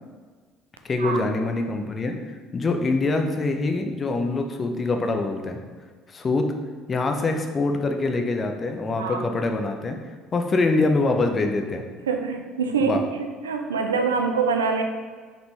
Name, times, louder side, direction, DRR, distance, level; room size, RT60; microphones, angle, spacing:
voice 1, 0.8-5.6 6.1-6.5 6.9-10.0 10.3-11.8 12.8-13.0, left 3 dB, 30° left, 5 dB, 0.4 m, -24 dB
voice 2, 12.1-14.8, right 5 dB, 75° right, 4 dB, 0.3 m, -25 dB
3.8 x 3.6 x 2.9 m, 1.5 s
figure-of-eight pair, 55°, 0 cm